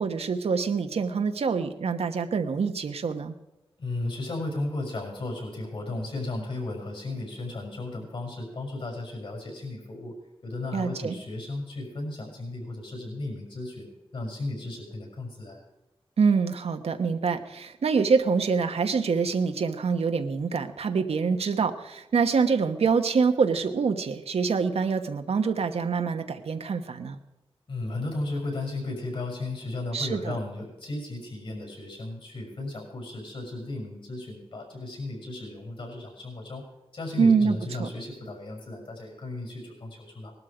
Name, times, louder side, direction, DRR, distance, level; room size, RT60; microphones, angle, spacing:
voice 1, 0.0-3.3 10.7-11.2 16.2-27.2 29.9-30.4 37.2-37.9, right 5 dB, 90° right, 7 dB, 1.2 m, -25 dB
voice 2, 3.8-10.1 10.4-15.6 27.7-36.6 36.9-40.3, left 2 dB, 60° left, 1 dB, 6.2 m, -35 dB
19.5 x 12.5 x 5.0 m, 1.0 s
wide cardioid pair, 130°, 10 cm